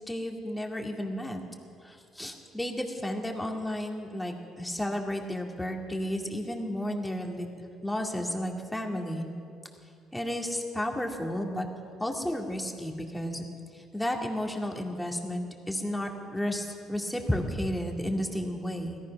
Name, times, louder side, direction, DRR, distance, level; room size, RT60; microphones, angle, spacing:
voice 1, 0.1-1.4 1.8-7.5 7.8-9.2 10.1-11.6 12.0-13.5 13.7-19.0, left 1 dB, 10° left, 1 dB, 2.4 m, -32 dB
17.5 x 13.5 x 5.9 m, 2.5 s
supercardioid pair, 80°, 0 cm